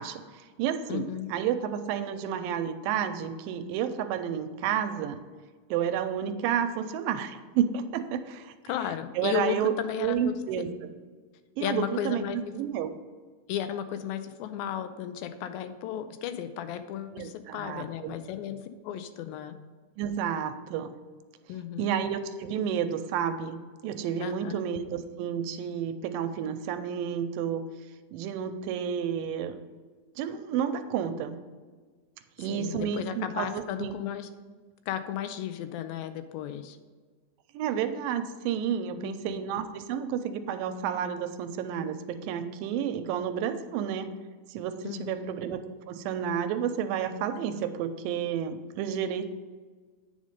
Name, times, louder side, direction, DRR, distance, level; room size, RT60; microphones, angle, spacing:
voice 1, 0.0-5.2 5.7-8.5 9.2-10.9 11.6-12.9 17.1-18.2 20.0-20.9 21.8-23.6 23.8-27.6 28.1-29.6 30.2-31.4 32.4-34.0 37.5-44.1 44.5-49.3, right 8 dB, 85° right, 9 dB, 2.2 m, -31 dB
voice 2, 0.9-1.3 8.6-10.4 11.6-12.5 13.5-19.6 21.5-21.9 24.2-24.6 32.4-34.3 34.9-36.8 39.0-39.4 44.8-45.3, left 10 dB, 90° left, 10 dB, 2.4 m, -34 dB
8.9 x 5.2 x 5.2 m, 1.5 s
omnidirectional pair, 4.1 m